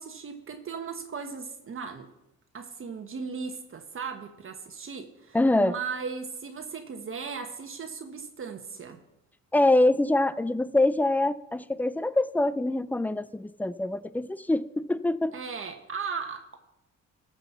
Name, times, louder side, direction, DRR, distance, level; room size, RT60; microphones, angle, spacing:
voice 1, 0.0-2.1 2.5-9.0 15.3-16.6, right 5 dB, 45° right, 6 dB, 1.1 m, -37 dB
voice 2, 5.3-5.7 9.5-15.3, left 2 dB, 5° left, 16 dB, 0.4 m, -24 dB
13.5 x 6.0 x 5.9 m, 0.87 s
cardioid pair, 90°, 30 cm